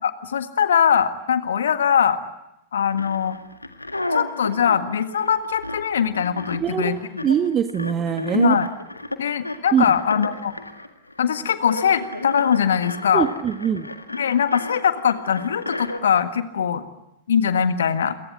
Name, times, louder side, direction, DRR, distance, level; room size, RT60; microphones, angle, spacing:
voice 1, 0.0-2.2 2.7-3.4 4.1-7.3 8.3-8.7 9.2-10.5 11.2-13.3 14.1-16.8 17.3-18.2, left 8 dB, 65° left, 10 dB, 1.6 m, -21 dB
sound 1, 2.9-16.0, left 2 dB, 85° left, 1.8 m, -33 dB
voice 2, 6.6-7.0 7.2-8.5 9.7-9.8 13.1-13.9, right 8 dB, 25° right, 8 dB, 1.4 m, -22 dB
29.0 x 23.5 x 7.7 m, 0.85 s
figure-of-eight pair, 90°, 0 cm